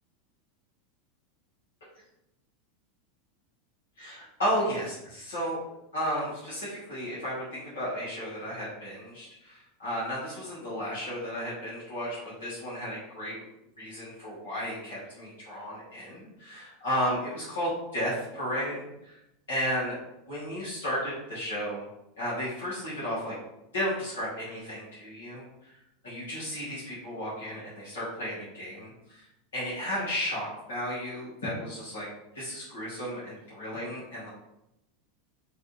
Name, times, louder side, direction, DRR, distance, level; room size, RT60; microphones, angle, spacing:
voice 1, 4.0-5.6 5.9-13.4 13.8-19.2 19.5-19.9 20.2-21.8 22.2-23.3 23.7-25.5 26.0-29.2 29.5-32.1 32.3-34.3, equal, 75° left, -9 dB, 1.3 m, -33 dB
3.2 x 2.4 x 2.8 m, 0.86 s
hypercardioid pair, 90°, 0 cm